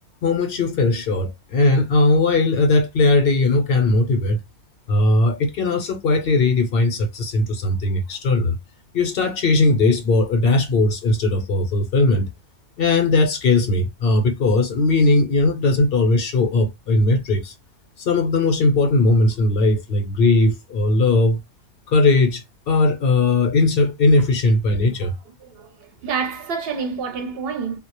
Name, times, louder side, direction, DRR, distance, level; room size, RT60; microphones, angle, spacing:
voice 1, 0.2-4.4 4.9-8.6 8.9-12.3 12.8-17.5 18.0-21.4 21.9-25.1, left 2 dB, 60° left, 0.8 m, -18 dB
voice 2, 25.4-27.8, right 5 dB, 65° right, 0.8 m, -28 dB
2.1 x 2.0 x 2.9 m
omnidirectional pair, 1.1 m